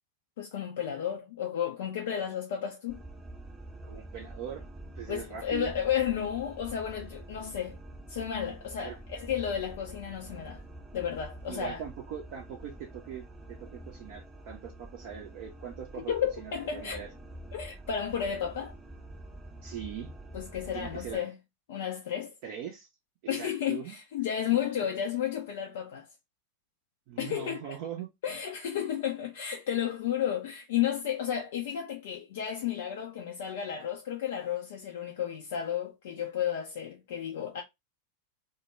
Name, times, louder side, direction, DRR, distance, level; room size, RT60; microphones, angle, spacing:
voice 1, 0.4-3.0 5.1-7.8 8.1-10.6 10.9-11.8 16.1-17.1 17.5-18.7 20.3-21.3 21.7-22.3 23.3-26.1 27.2-27.8 28.2-37.6, left 9 dB, 55° left, 0.4 m, -32 dB
sound 1, 2.9-21.2, right 1 dB, 5° right, 0.6 m, -46 dB
voice 2, 3.8-4.6 5.0-5.7 8.8-9.0 11.5-17.1 19.6-20.1 20.7-21.3 22.4-22.9 23.3-23.9 27.1-28.1, right 8 dB, 45° right, 0.5 m, -41 dB
2.2 x 2.1 x 2.9 m
figure-of-eight pair, 90°, 0 cm